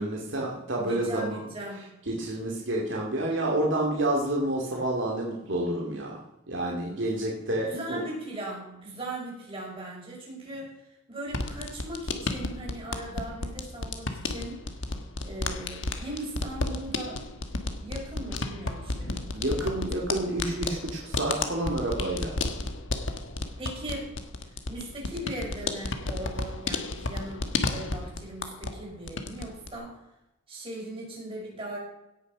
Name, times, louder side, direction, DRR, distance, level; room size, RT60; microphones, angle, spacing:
voice 1, 0.0-1.5 2.1-6.2 6.5-8.0 19.3-22.3, right 1 dB, 65° right, -2 dB, 2.4 m, -29 dB
voice 2, 0.8-1.8 7.7-10.7 11.1-14.6 15.2-17.2 17.8-20.1 23.6-24.1 24.7-29.9 30.5-31.8, right 1 dB, 25° right, -3 dB, 5.7 m, -39 dB
sound 1, 11.3-28.8 29.1-29.8, left 3 dB, 60° left, 1.3 m, -33 dB
17.0 x 6.8 x 6.0 m, 0.90 s
head